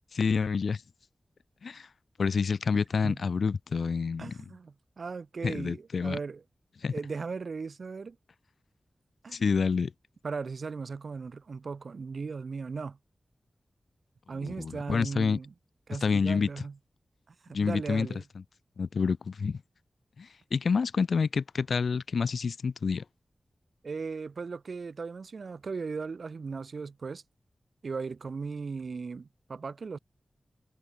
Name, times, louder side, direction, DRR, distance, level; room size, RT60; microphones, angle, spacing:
voice 1, 0.1-0.8 1.6-1.9 2.2-4.3 5.4-6.2 6.8-6.9 9.3-9.9 14.4-15.4 16.0-16.5 17.5-18.1 18.8-19.6 20.2-23.0, left 5 dB, 80° left, 1.3 m, -28 dB
voice 2, 4.2-6.4 6.9-8.2 9.2-9.4 10.2-13.0 14.3-15.5 15.9-16.8 17.3-18.2 23.8-27.2 27.8-30.0, right 4 dB, 65° right, 5.9 m, -37 dB
wide cardioid pair, 90°, 0 cm